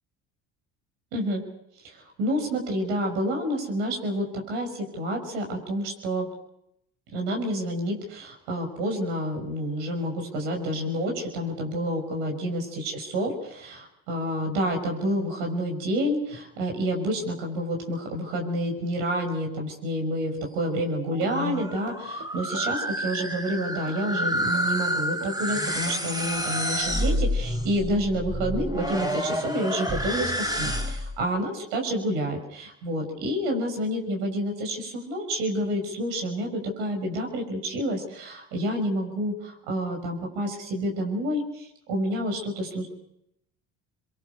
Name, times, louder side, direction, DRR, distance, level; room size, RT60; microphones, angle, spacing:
voice 1, 1.1-1.4 1.8-6.3 7.1-42.9, equal, 85° right, 3 dB, 6.0 m, -29 dB
sound 1, 21.1-31.2, equal, 10° right, 4.9 m, -29 dB
sound 2, 21.2-26.4, right 7 dB, 60° right, 3.6 m, -44 dB
24.0 x 23.0 x 6.8 m, 0.79 s
supercardioid pair, 80°, 33 cm